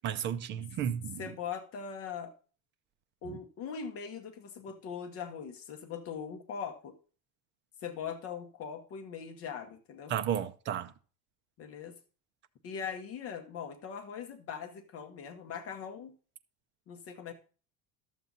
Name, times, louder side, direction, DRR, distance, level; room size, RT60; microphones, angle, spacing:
voice 1, 0.0-1.3 10.1-10.9, right 9 dB, 30° right, 0.6 m, -33 dB
voice 2, 1.2-2.3 3.2-6.9 7.8-10.2 11.6-12.0 12.6-16.1 16.9-17.3, left 7 dB, 40° left, 1.0 m, -41 dB
12.0 x 7.2 x 3.9 m
cardioid pair, 170°, 37 cm